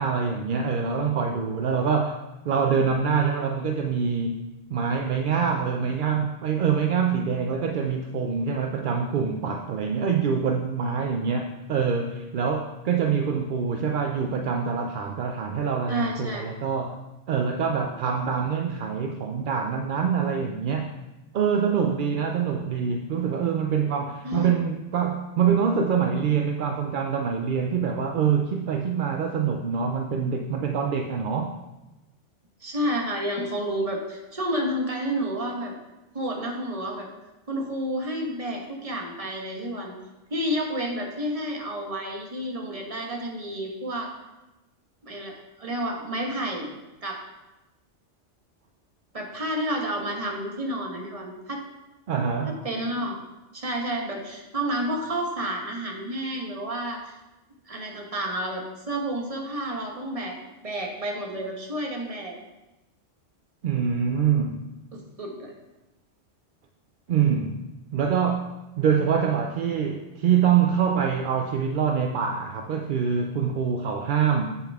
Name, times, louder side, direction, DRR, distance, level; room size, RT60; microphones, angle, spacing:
voice 1, 0.0-2.2 2.5-4.4 4.7-17.0 17.3-21.0 21.3-31.5 52.1-52.6 63.6-64.6 67.1-67.6 67.9-74.6, right 6 dB, 60° right, 4 dB, 0.6 m, -25 dB
voice 2, 15.9-16.5 24.2-24.5 32.6-35.8 36.1-37.1 37.5-39.9 40.3-44.1 45.0-46.7 47.0-47.2 49.1-51.6 52.5-53.2 53.5-57.0 57.7-60.3 60.6-62.4 64.9-65.5, equal, 30° right, 1 dB, 1.2 m, -30 dB
7.6 x 6.9 x 3.5 m, 1.0 s
omnidirectional pair, 1.3 m